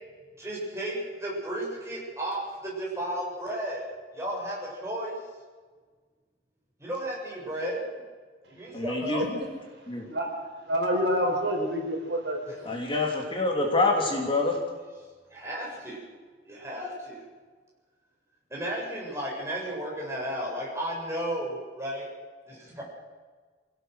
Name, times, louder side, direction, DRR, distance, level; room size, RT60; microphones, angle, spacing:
voice 1, 0.4-3.8 4.1-5.2 6.8-8.0 8.5-9.2 12.4-12.7 15.3-16.0 16.5-17.3 18.5-22.1 22.5-22.8, right 1 dB, 15° right, -4 dB, 7.6 m, -34 dB
voice 2, 8.7-9.2 9.9-10.1 12.6-14.6, left 2 dB, 30° left, 0 dB, 3.0 m, -26 dB
voice 3, 10.7-12.7, equal, 70° right, 2 dB, 4.8 m, -27 dB
24.5 x 17.0 x 6.5 m, 1.5 s
head